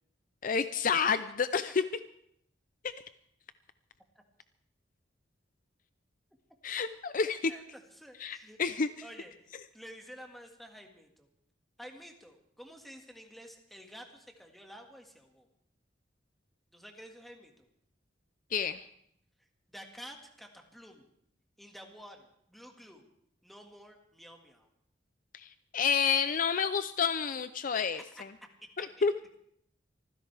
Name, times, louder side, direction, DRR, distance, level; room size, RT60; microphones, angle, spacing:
voice 1, 0.4-1.8 2.8-2.9 6.6-7.5 8.2-8.9 18.5-18.8 25.3-28.0 28.8-29.1, left 6 dB, 45° left, 12 dB, 0.5 m, -29 dB
voice 2, 7.5-8.6 9.0-11.3 11.8-15.5 16.7-17.7 19.4-21.1 21.6-23.0 23.4-24.7 25.8-25.9 27.9-28.2 28.8-29.1, equal, ahead, 2 dB, 1.9 m, -51 dB
25.0 x 15.5 x 3.4 m, 0.71 s
head